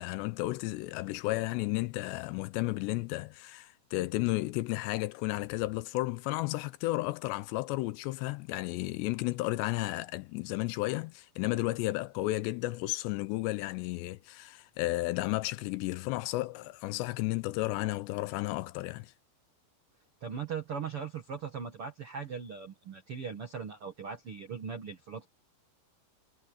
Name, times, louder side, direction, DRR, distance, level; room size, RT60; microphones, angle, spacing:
voice 1, 0.0-19.1, left 19 dB, 80° left, 2.7 m, -33 dB
voice 2, 20.2-25.3, right 6 dB, 65° right, 1.4 m, -39 dB
omnidirectional pair, 5.2 m